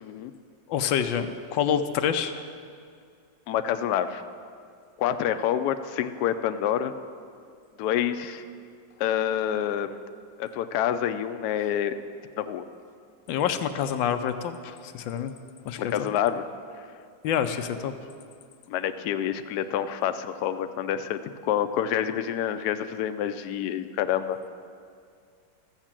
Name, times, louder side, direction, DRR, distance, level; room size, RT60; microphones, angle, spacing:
voice 1, 0.0-0.3 3.5-4.2 5.0-6.9 7.8-8.4 9.0-10.0 10.4-12.0 12.4-12.6 15.8-16.4 18.7-24.4, left 10 dB, 70° left, 9 dB, 1.0 m, -27 dB
voice 2, 0.7-2.3 13.3-15.4 15.7-15.9 17.2-17.9, left 8 dB, 90° left, 8 dB, 1.4 m, -27 dB
13.5 x 7.2 x 7.4 m, 2.3 s
omnidirectional pair, 2.0 m